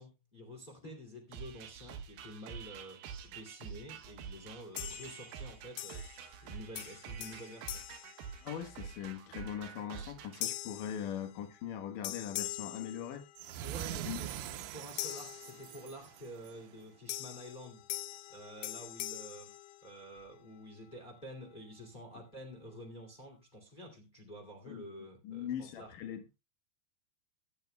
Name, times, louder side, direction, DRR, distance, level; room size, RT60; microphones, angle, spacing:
voice 1, 0.0-3.0 3.2-6.0 6.4-7.8 13.6-17.8 18.3-19.5 19.8-25.9, equal, 15° left, 1.6 m, -49 dB
sound 1, 1.3-10.4, right 7 dB, 70° right, 2.5 m, -47 dB
sound 2, 4.8-5.4 5.8-6.5 6.8-8.9 9.4-9.7 10.4-11.7 12.0-13.7 15.0-16.1 17.1-20.3, left 15 dB, 80° left, 2.3 m, -43 dB
voice 2, 8.4-13.2 14.0-14.3 24.7-24.9 25.2-26.4, left 9 dB, 65° left, 2.3 m, -41 dB
sound 3, 13.4-16.7, right 12 dB, 85° right, 3.1 m, -43 dB
23.5 x 8.1 x 2.3 m
omnidirectional pair, 5.2 m